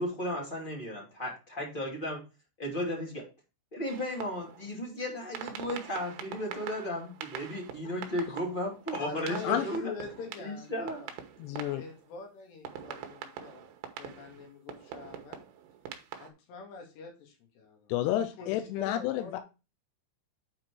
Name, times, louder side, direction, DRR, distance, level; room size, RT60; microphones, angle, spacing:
voice 1, 0.0-2.2 2.6-3.2 3.7-9.9 10.4-11.0, left 1 dB, 20° left, -1 dB, 1.3 m, -35 dB
sound 1, 3.9-4.7 5.3-12.2 12.6-16.3, right 9 dB, 75° right, 2.8 m, -44 dB
voice 2, 9.0-11.1 11.7-13.6 14.0-15.4 16.1-19.4, left 5 dB, 65° left, 2 dB, 4.1 m, -44 dB
voice 3, 11.4-11.8 17.9-19.4, left 12 dB, 85° left, 8 dB, 2.5 m, -30 dB
8.6 x 4.5 x 4.6 m, 0.29 s
omnidirectional pair, 5.5 m